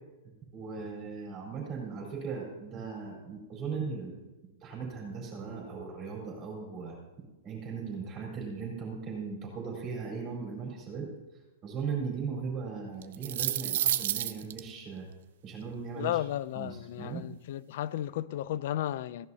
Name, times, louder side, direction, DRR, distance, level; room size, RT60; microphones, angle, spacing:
voice 1, 0.5-4.2 4.6-7.0 7.4-11.1 11.6-15.1 15.4-16.2 16.5-16.7 17.0-17.2, right 5 dB, 20° right, 4.3 m, -38 dB
sound 1, 13.0-14.6, right 12 dB, 60° right, 0.6 m, -29 dB
voice 2, 15.9-19.3, left 12 dB, 50° left, 0.4 m, -34 dB
16.0 x 11.0 x 2.8 m
supercardioid pair, 175°, 0 cm